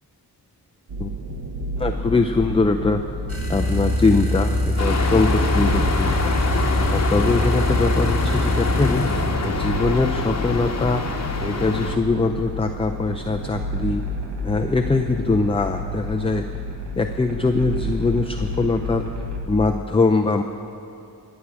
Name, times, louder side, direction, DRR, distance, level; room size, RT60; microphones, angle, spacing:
sound 1, 0.9-19.5, equal, 80° right, 1.3 m, -30 dB
voice 1, 1.8-3.0 3.5-6.4 6.9-9.0 9.4-11.0 11.4-14.0 14.4-16.5 16.9-19.1 19.5-20.4, left 3 dB, 15° left, 5 dB, 0.5 m, -22 dB
sound 2, 3.3-9.3, left 1 dB, 35° right, 2.5 m, -23 dB
sound 3, 4.8-12.0, left 4 dB, 40° left, 1.1 m, -26 dB
21.5 x 7.2 x 4.9 m, 2.6 s
cardioid pair, 55°, 40 cm